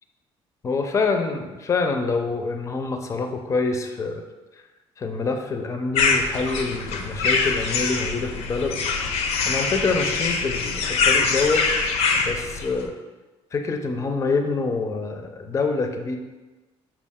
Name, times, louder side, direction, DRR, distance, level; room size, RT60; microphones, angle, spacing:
voice 1, 0.6-4.2 4.5-4.6 5.0-9.1 9.4-11.6 12.1-12.9 13.5-16.2, left 4 dB, 30° left, 5 dB, 0.5 m, -26 dB
sound 1, 6.0-12.8, left 4 dB, 75° left, 0.5 m, -24 dB
6.2 x 2.4 x 3.5 m, 1.2 s
cardioid pair, 115°, 11 cm